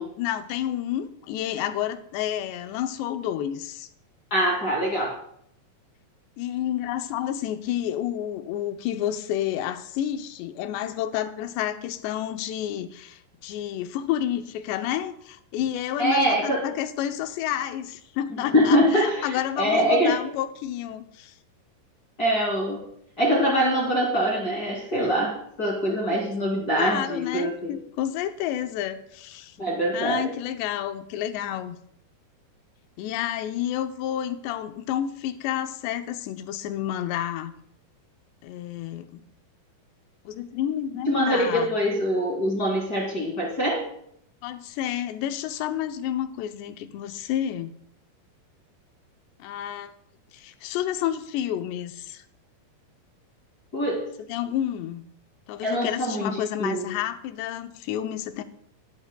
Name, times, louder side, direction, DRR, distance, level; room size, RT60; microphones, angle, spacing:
voice 1, 0.2-3.9 6.4-21.4 25.9-26.2 26.7-29.6 29.9-31.8 33.0-37.5 38.4-39.2 40.3-41.7 44.4-47.7 49.4-49.9 50.3-52.2 54.3-55.0 55.5-58.4, left 11 dB, 90° left, 8 dB, 2.9 m, -30 dB
voice 2, 4.3-5.2 16.0-16.7 18.5-20.2 22.2-22.9 23.2-27.8 29.6-30.2 41.1-43.9 53.7-54.1 55.6-56.9, equal, 30° left, -2 dB, 2.4 m, -24 dB
21.5 x 10.5 x 2.2 m, 0.70 s
omnidirectional pair, 4.8 m